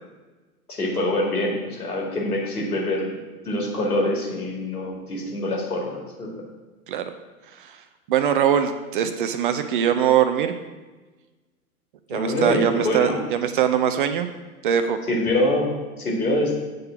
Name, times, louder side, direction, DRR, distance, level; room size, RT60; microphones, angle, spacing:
voice 1, 0.7-6.3 12.1-13.2 15.1-15.7 16.0-16.5, left 1 dB, 80° left, -2 dB, 2.2 m, -25 dB
voice 2, 8.1-10.6 12.1-14.3 14.6-15.0, right 9 dB, 40° right, 9 dB, 0.4 m, -22 dB
7.6 x 3.8 x 5.7 m, 1.2 s
figure-of-eight pair, 105°, 44 cm